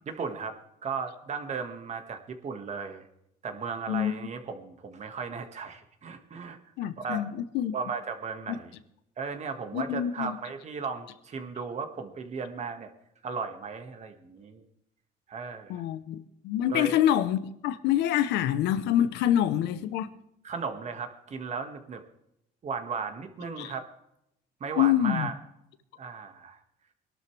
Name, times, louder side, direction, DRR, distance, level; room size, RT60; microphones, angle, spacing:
voice 1, 0.1-3.1 3.4-7.3 7.7-8.7 9.2-12.9 13.2-14.6 15.3-15.9 16.7-17.0 20.4-22.0 22.6-23.9 24.6-25.3 26.0-26.6, right 5 dB, 40° right, 1.8 m, -36 dB
voice 2, 6.8-7.7 8.5-8.6 9.7-10.4 15.7-20.1 23.6-23.7 24.8-25.3, left 11 dB, 85° left, 0.9 m, -26 dB
22.0 x 12.0 x 3.4 m
cardioid pair, 110°, 17 cm